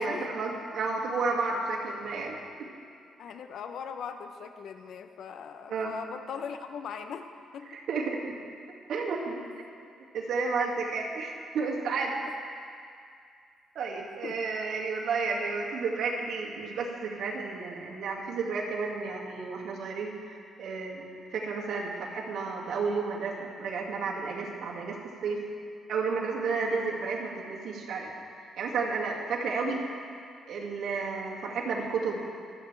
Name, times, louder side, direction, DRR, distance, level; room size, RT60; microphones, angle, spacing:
voice 1, 0.0-2.7 5.7-5.9 7.7-8.3 8.9-9.4 10.1-12.2 13.8-21.0 21.3-25.0 25.2-25.4 25.9-28.1 28.6-29.8 30.5-32.2, right 4 dB, 70° right, -2 dB, 2.2 m, -32 dB
voice 2, 3.2-7.3 7.5-7.8 14.2-14.4 26.9-27.0 29.6-29.8, left 7 dB, 70° left, 7 dB, 0.8 m, -40 dB
25.0 x 8.9 x 3.4 m, 2.3 s
cardioid pair, 90°, 0 cm